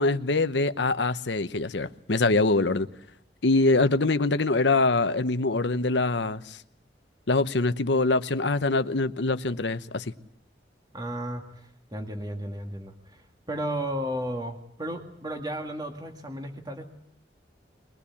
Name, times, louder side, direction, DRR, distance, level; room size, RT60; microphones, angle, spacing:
voice 1, 0.0-2.9 3.4-6.6 7.3-10.1, left 3 dB, 75° left, 1.0 m, -24 dB
voice 2, 10.9-16.9, right 1 dB, 20° right, 2.1 m, -34 dB
23.0 x 19.5 x 8.6 m
head